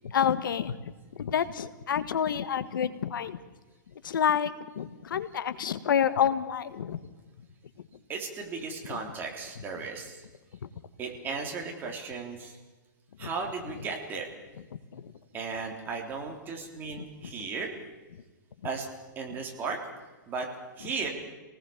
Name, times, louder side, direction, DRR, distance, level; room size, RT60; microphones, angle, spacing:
voice 1, 0.0-3.4 4.0-7.0 8.9-9.0 13.2-13.3 14.9-15.1 17.0-17.3 18.1-18.2, left 8 dB, 80° left, 13 dB, 1.5 m, -29 dB
voice 2, 8.1-10.2 11.0-12.6 13.2-14.3 15.3-17.7 18.6-18.9 19.2-19.8 20.3-20.5 20.8-21.1, right 4 dB, 20° right, 2 dB, 3.5 m, -35 dB
28.0 x 19.0 x 7.2 m, 1.2 s
hypercardioid pair, 160°, 11 cm